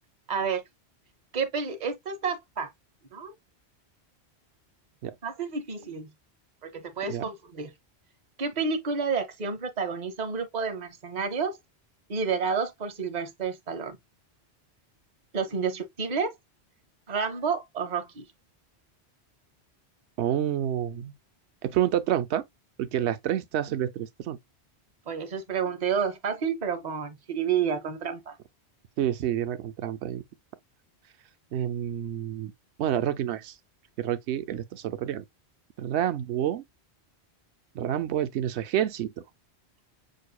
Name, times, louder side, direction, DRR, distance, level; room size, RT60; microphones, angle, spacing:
voice 1, 0.3-0.6 1.3-2.7 3.1-3.3 5.2-6.1 6.6-7.7 8.4-11.6 12.1-14.0 15.3-16.3 17.1-18.2 25.1-28.4, right 6 dB, 40° right, 1.0 m, -30 dB
voice 2, 20.2-21.1 21.6-22.4 22.8-24.4 29.0-30.2 31.5-32.5 32.8-33.5 34.0-35.2 35.8-36.6 37.7-39.1, right 11 dB, 85° right, 0.9 m, -28 dB
6.4 x 2.6 x 2.3 m
omnidirectional pair, 1.1 m